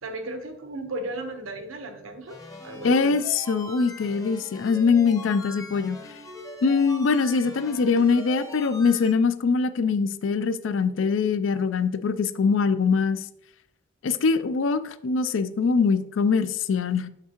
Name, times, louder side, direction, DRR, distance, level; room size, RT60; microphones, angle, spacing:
voice 1, 0.0-2.4 2.6-3.1, right 1 dB, 80° right, 5 dB, 1.0 m, -35 dB
sound 1, 2.3-9.1, left 1 dB, 15° left, 0.7 m, -41 dB
voice 2, 2.8-6.0 6.6-13.2 14.0-17.1, left 5 dB, 65° left, 13 dB, 0.4 m, -23 dB
6.4 x 5.8 x 2.9 m, 0.75 s
head